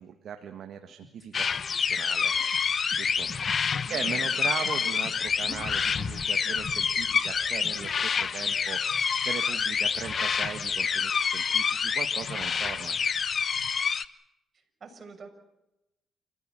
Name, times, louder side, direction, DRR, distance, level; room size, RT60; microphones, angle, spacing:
voice 1, 0.0-2.3 3.0-13.0, right 8 dB, 65° right, 7 dB, 1.7 m, -39 dB
sound 1, 0.9-8.1, left 2 dB, 30° left, 6.6 m, -45 dB
sound 2, 1.3-14.0, left 6 dB, 45° left, 1.0 m, -27 dB
voice 2, 3.8-4.3 14.5-15.3, right 4 dB, 45° right, 5 dB, 6.4 m, -47 dB
28.5 x 15.5 x 8.8 m, 0.92 s
cardioid pair, 90°, 0 cm